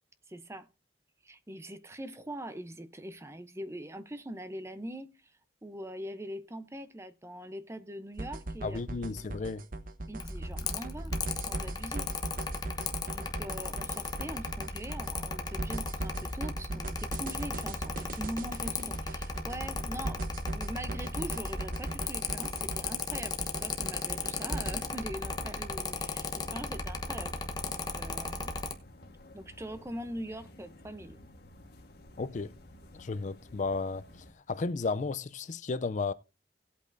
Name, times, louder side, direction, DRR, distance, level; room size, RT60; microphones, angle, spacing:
voice 1, 0.3-0.7 1.2-5.1 5.6-8.8 10.1-12.1 12.7-20.2 20.5-27.3 27.7-28.5 29.3-31.2, right 1 dB, 15° right, 0.7 m, -42 dB
sound 1, 8.2-24.7, right 2 dB, 50° right, 0.9 m, -39 dB
voice 2, 8.6-9.7 32.2-32.5 33.0-34.1 34.5-36.1, left 4 dB, 45° left, 0.4 m, -33 dB
Mechanical fan, 10.2-28.7, left 3 dB, 25° left, 1.0 m, -36 dB
sound 2, 24.0-34.3, left 1 dB, 60° left, 1.5 m, -53 dB
18.0 x 8.3 x 2.6 m
head